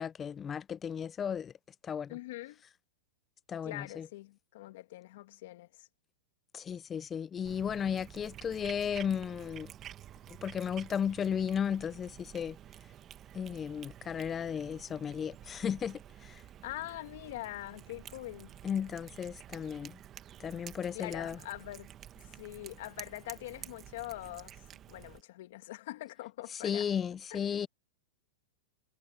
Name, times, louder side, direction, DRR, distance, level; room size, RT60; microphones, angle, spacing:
voice 1, 0.0-1.5 1.8-2.2 3.5-4.1 6.5-9.7 10.4-12.6 13.3-16.3 18.6-20.0 20.4-21.4 26.6-27.7, left 8 dB, 20° left, 0.5 m, -34 dB
voice 2, 2.1-2.6 3.6-5.9 16.6-18.6 20.9-21.9 22.2-26.9 27.3-27.5, left 17 dB, 65° left, 2.1 m, -43 dB
Cat, 7.4-25.2, right 11 dB, 30° right, 1.4 m, -51 dB
hypercardioid pair, 130°, 0 cm